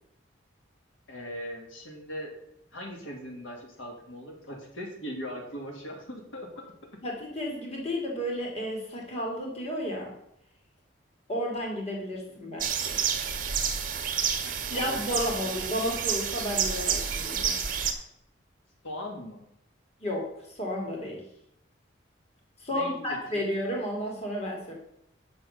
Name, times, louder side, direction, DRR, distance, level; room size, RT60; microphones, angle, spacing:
voice 1, 1.1-2.3 2.7-6.7 12.4-12.7 14.4-15.5 18.8-19.4 22.7-23.5, equal, 85° left, 1 dB, 2.3 m, -40 dB
voice 2, 7.0-10.1 11.3-13.0 14.7-17.5 20.0-21.2 22.6-24.7, equal, 30° left, -1 dB, 2.5 m, -32 dB
sound 1, 12.6-17.9, right 7 dB, 45° right, 1.3 m, -29 dB
8.9 x 6.3 x 6.4 m, 0.79 s
head